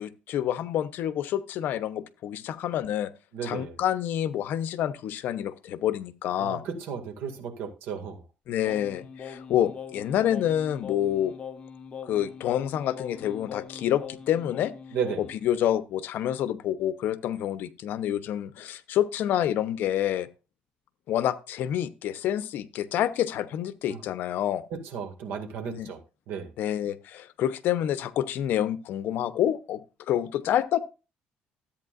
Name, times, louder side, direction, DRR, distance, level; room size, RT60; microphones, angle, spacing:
voice 1, 0.0-3.1 3.4-6.6 8.5-11.3 12.1-14.7 15.2-20.3 21.1-24.6 25.6-25.9 26.6-30.8, left 11 dB, 60° left, 0.8 m, -28 dB
voice 2, 3.3-3.7 6.4-8.2 14.9-15.2 23.9-24.0 24.9-26.0 26.3-26.5, right 7 dB, 75° right, 2.2 m, -34 dB
Singing, 8.6-15.5, left 7 dB, 30° left, 0.9 m, -42 dB
13.5 x 8.7 x 2.5 m
cardioid pair, 160°, 4 cm